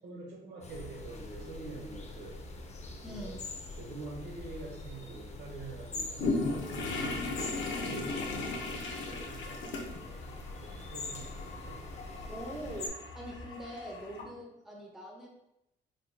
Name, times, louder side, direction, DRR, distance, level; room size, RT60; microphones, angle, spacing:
voice 1, 0.0-2.4 3.1-3.4 3.7-7.2 7.8-11.8 14.2-14.3, right 3 dB, 60° right, -2 dB, 1.2 m, -46 dB
sound 1, 0.6-12.9, left 2 dB, 35° left, 0.6 m, -44 dB
voice 2, 3.0-3.5 12.3-15.3, equal, ahead, -2 dB, 0.8 m, -43 dB
sound 2, 6.2-14.2, left 3 dB, 70° left, 0.8 m, -37 dB
4.0 x 3.6 x 2.2 m, 0.87 s
cardioid pair, 90°, 20 cm